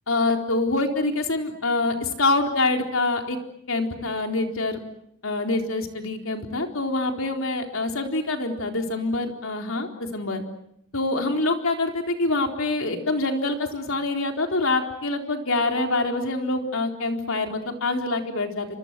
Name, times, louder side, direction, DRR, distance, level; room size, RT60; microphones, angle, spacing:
voice 1, 0.1-3.4 3.7-4.8 5.2-10.4 10.9-18.7, left 2 dB, 65° left, 4 dB, 4.1 m, -25 dB
30.0 x 26.0 x 7.6 m, 0.74 s
head